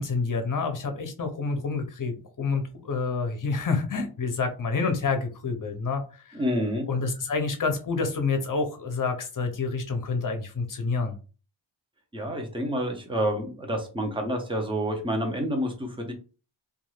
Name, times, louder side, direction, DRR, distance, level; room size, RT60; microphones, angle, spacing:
voice 1, 0.0-6.0 6.9-11.2, left 4 dB, 40° left, 6 dB, 0.7 m, -28 dB
voice 2, 6.3-6.9 12.1-16.1, equal, 10° right, 3 dB, 0.7 m, -28 dB
2.6 x 2.4 x 3.1 m, 0.35 s
wide cardioid pair, 90°, 49 cm